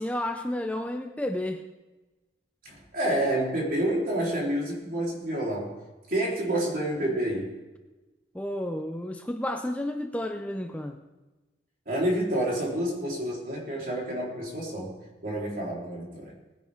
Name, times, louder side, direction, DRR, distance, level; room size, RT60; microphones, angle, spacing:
voice 1, 0.0-1.6 8.3-11.0, left 1 dB, 10° left, 5 dB, 0.6 m, -31 dB
voice 2, 2.6-5.7 6.1-7.5 11.9-15.0 15.2-16.3, right 1 dB, 50° right, -3 dB, 3.8 m, -28 dB
19.5 x 10.5 x 3.6 m, 1.1 s
head